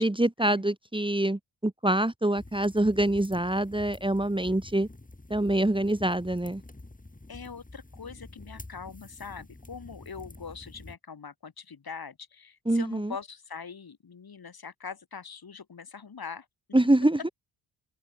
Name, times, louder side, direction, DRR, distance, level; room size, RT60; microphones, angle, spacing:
voice 1, 0.0-4.9 5.3-6.6 12.7-13.1 16.7-17.2, right 1 dB, 10° right, 2.1 m, -25 dB
sound 1, 2.4-11.0, left 2 dB, 15° left, 3.6 m, -48 dB
voice 2, 7.3-16.5, left 6 dB, 50° left, 3.4 m, -42 dB
open air
hypercardioid pair, 40°, 49 cm